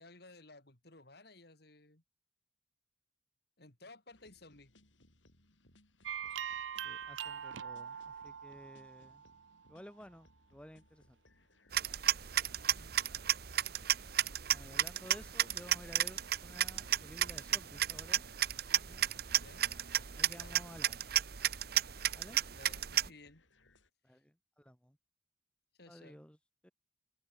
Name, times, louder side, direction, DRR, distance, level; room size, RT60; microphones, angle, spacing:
voice 1, 0.0-2.0 3.6-4.7 12.6-13.0 19.3-19.6 20.3-20.6 22.5-23.4 24.1-24.2 25.8-26.2, left 2 dB, 55° left, 3.8 m, -57 dB
sound 1, 4.1-23.9, left 2 dB, 85° left, 5.6 m, -68 dB
sound 2, 6.0-9.6, right 8 dB, 85° right, 0.6 m, -42 dB
voice 2, 6.8-9.2 9.7-11.2 14.5-18.3 18.6-19.1 20.1-21.1 22.1-22.4 24.0-25.0 25.9-26.4 26.6-26.7, equal, 5° left, 2.3 m, -54 dB
sound 3, 11.7-23.1, right 11 dB, 55° right, 0.9 m, -33 dB
head